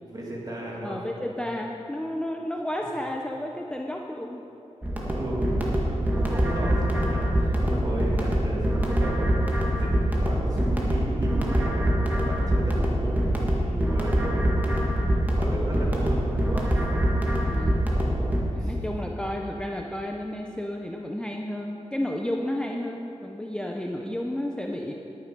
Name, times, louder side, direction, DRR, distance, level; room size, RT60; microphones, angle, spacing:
voice 1, 0.1-1.0 5.1-13.5 13.7-14.6 15.1-16.7 16.9-17.6 18.6-19.0, right 1 dB, 30° right, -4 dB, 2.4 m, -35 dB
voice 2, 0.8-4.5 7.6-7.7 13.6-14.0 17.2-17.8 18.5-24.9, left 1 dB, 5° left, 1 dB, 0.6 m, -32 dB
sound 1, 4.8-18.4, right 1 dB, 15° right, 1.6 m, -24 dB
11.0 x 9.5 x 5.2 m, 2.9 s
wide cardioid pair, 130°, 12 cm